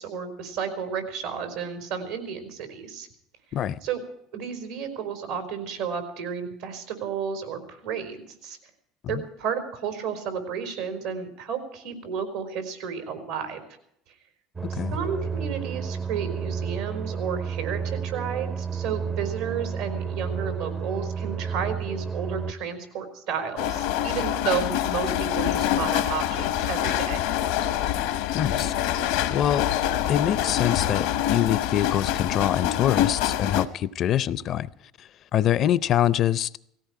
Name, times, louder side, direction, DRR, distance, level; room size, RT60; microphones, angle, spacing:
voice 1, 0.0-3.1 3.8-4.0 4.3-8.6 9.1-13.6 14.7-27.2, right 7 dB, 90° right, 4.4 m, -32 dB
sound 1, 14.6-22.5, right 6 dB, 25° right, 0.6 m, -31 dB
sound 2, 23.6-33.7, left 11 dB, 80° left, 0.9 m, -25 dB
voice 2, 28.3-28.7 29.3-29.6 30.1-34.7 35.0-36.6, left 11 dB, 50° left, 0.5 m, -25 dB
18.0 x 16.5 x 4.9 m
hypercardioid pair, 80°, 0 cm